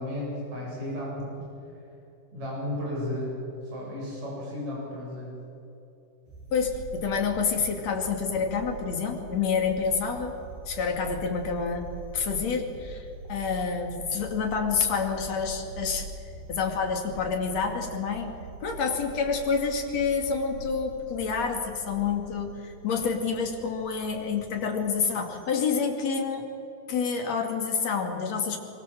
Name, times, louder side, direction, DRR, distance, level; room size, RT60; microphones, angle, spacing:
voice 1, 0.0-1.4 2.3-3.4 3.6-5.3, left 1 dB, 45° right, -4 dB, 9.2 m, -34 dB
sound 1, 6.3-25.5, right 4 dB, 85° right, 4.4 m, -43 dB
voice 2, 6.5-10.4 10.7-11.9 12.1-16.1 16.5-18.3 18.6-26.5 26.9-28.6, left 5 dB, 45° left, 3 dB, 3.2 m, -28 dB
24.5 x 22.5 x 7.6 m, 2.8 s
omnidirectional pair, 4.6 m